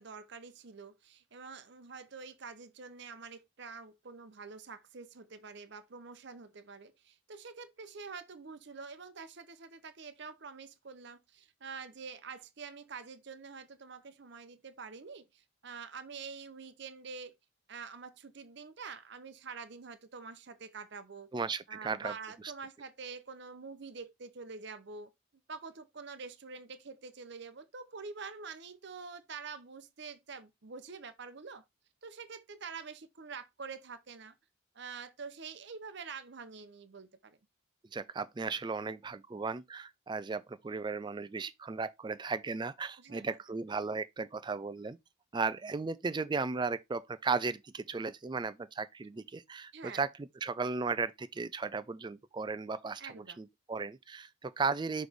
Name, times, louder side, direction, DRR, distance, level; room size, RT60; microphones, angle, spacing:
voice 1, 0.0-17.3 17.7-21.3 21.7-25.1 25.5-31.6 32.0-34.3 34.7-37.4 43.0-43.3 49.7-50.0 53.0-53.4, right 5 dB, 55° right, 0.7 m, -46 dB
voice 2, 21.3-22.1 37.9-45.0 45.3-55.1, right 4 dB, 20° right, 0.3 m, -36 dB
6.2 x 3.1 x 5.0 m
head